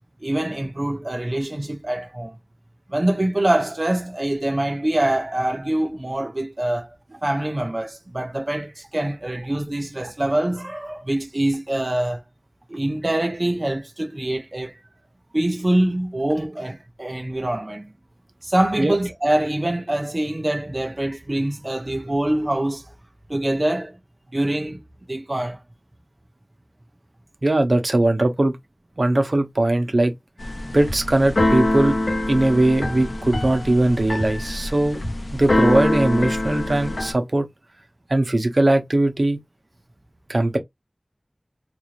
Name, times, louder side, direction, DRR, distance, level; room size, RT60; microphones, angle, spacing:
voice 1, 0.2-2.3 2.9-6.9 7.2-12.2 12.7-14.8 15.3-17.8 18.4-22.9 23.3-24.0 24.3-24.8 25.1-25.6, right 1 dB, 40° right, 0.6 m, -24 dB
voice 2, 27.4-28.5 29.0-30.1 30.7-32.0 32.3-35.0 35.3-37.5 38.1-39.4 40.3-40.6, right 1 dB, 65° right, 0.9 m, -20 dB
Keyboard (musical), 30.4-37.1, left 1 dB, 70° left, 0.8 m, -24 dB
3.8 x 2.5 x 3.1 m
wide cardioid pair, 45°, 0 cm